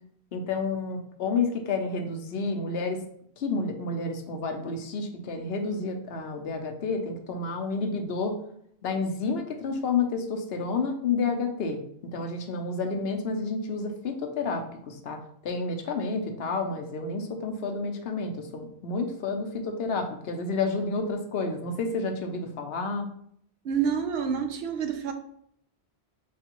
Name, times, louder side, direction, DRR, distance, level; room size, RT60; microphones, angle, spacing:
voice 1, 0.3-3.0 3.4-8.4 8.8-11.8 12.1-23.1, left 4 dB, 75° left, 4 dB, 0.9 m, -30 dB
voice 2, 23.6-25.1, right 7 dB, 75° right, 7 dB, 0.8 m, -28 dB
4.5 x 3.3 x 2.9 m, 0.67 s
omnidirectional pair, 1.1 m